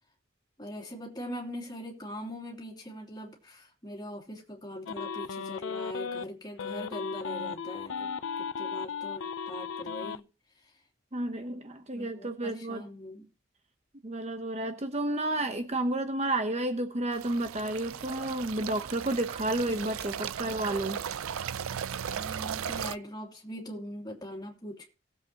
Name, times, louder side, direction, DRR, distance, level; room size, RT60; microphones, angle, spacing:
voice 1, 0.6-8.1 8.6-10.2 11.9-13.3 22.1-24.9, equal, 20° left, 3.1 m, -41 dB
sound 1, 4.9-6.2 6.6-10.2, left 6 dB, 65° left, 0.5 m, -36 dB
voice 2, 11.1-12.8 14.0-21.0, right 1 dB, 30° right, 0.9 m, -31 dB
sound 2, 17.1-23.0, right 8 dB, 75° right, 0.4 m, -36 dB
19.0 x 7.9 x 2.9 m
head